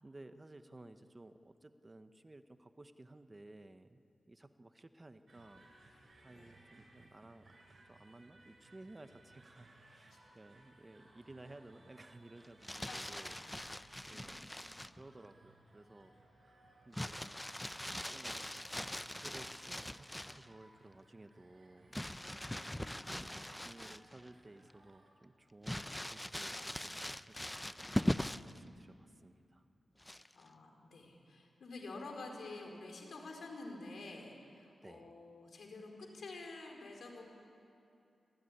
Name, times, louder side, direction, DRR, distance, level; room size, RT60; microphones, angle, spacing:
voice 1, 0.0-5.7 6.2-7.5 7.9-14.4 15.0-17.2 18.1-18.4 18.8-22.1 22.5-29.6 34.8-35.1, right 2 dB, 25° right, 10 dB, 0.9 m, -57 dB
sound 1, 5.3-25.1, right 2 dB, 45° right, 5.6 m, -64 dB
Crumpling crinkling, 12.4-15.0 16.9-20.5 21.9-24.3 24.7-24.8 25.6-28.6 30.0-30.5, left 1 dB, 10° left, 0.5 m, -41 dB
voice 2, 12.8-14.2 22.7-23.1 30.3-37.2, left 2 dB, 75° left, 1 dB, 4.5 m, -49 dB
24.5 x 16.0 x 9.9 m, 2.7 s
wide cardioid pair, 100°, 0 cm